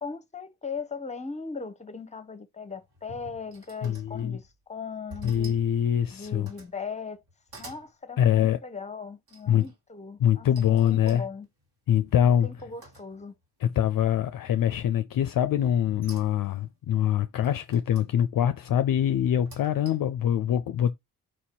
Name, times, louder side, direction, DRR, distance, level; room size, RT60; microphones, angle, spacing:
voice 1, 0.0-5.5 6.1-7.2 7.6-10.5 10.8-11.5 12.2-13.3, left 5 dB, 15° left, 0.8 m, -38 dB
sound 1, 2.7-4.6 5.1-5.7 6.1-6.8 7.2-7.9 9.3-9.8 10.6-13.5 13.8-14.3 15.6-16.7 17.4-18.1 19.3-20.2, right 1 dB, 60° right, 1.9 m, -50 dB
voice 2, 3.8-4.4 5.2-6.5 8.2-8.6 9.5-9.7 10.2-11.2 11.9-12.5 13.6-21.0, left 10 dB, 55° left, 0.4 m, -24 dB
4.5 x 2.7 x 4.4 m
supercardioid pair, 45°, 42 cm